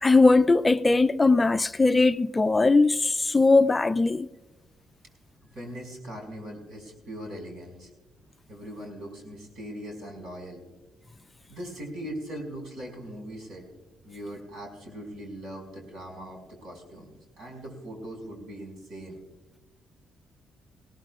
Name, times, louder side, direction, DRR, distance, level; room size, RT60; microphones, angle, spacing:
voice 1, 0.0-4.3, left 3 dB, 20° left, 0.4 m, -20 dB
voice 2, 5.5-7.9 8.5-10.6 11.5-13.6 14.0-17.1 17.4-19.2, equal, 80° right, 5.2 m, -40 dB
19.5 x 17.0 x 2.4 m
cardioid pair, 90°, 0 cm